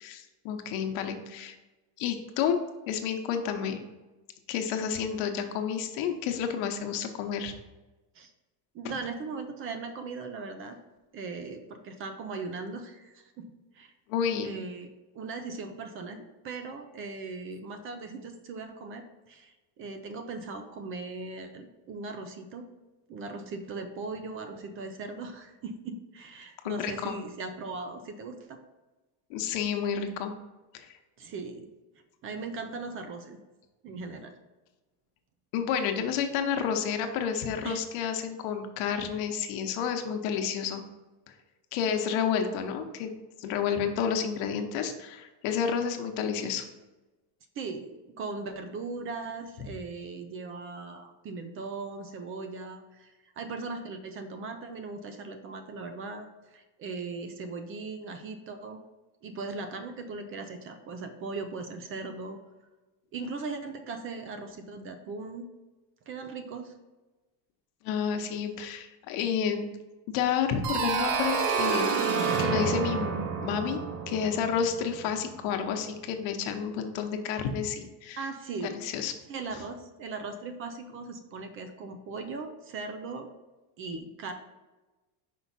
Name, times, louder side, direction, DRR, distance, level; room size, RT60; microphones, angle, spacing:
voice 1, 0.0-1.5 2.0-2.6 2.9-3.8 4.5-7.5 14.1-14.5 26.6-27.2 29.3-30.3 30.7-31.0 35.5-40.8 41.7-43.1 43.4-46.6 67.8-69.7 70.1-72.0 72.4-73.8 74.1-78.2 78.6-79.1, left 7 dB, 85° left, 5 dB, 1.0 m, -30 dB
voice 2, 8.7-10.8 11.1-13.9 14.4-22.7 23.1-28.6 31.2-31.7 32.2-33.4 33.8-34.3 37.6-37.8 47.6-58.8 59.2-62.4 63.1-65.5 66.1-66.7 78.2-83.3 83.8-84.3, right 3 dB, 30° right, 7 dB, 0.4 m, -39 dB
sound 1, 70.6-75.3, right 6 dB, 85° right, 1.1 m, -29 dB
5.6 x 4.6 x 4.1 m, 1.1 s
cardioid pair, 180°, 43 cm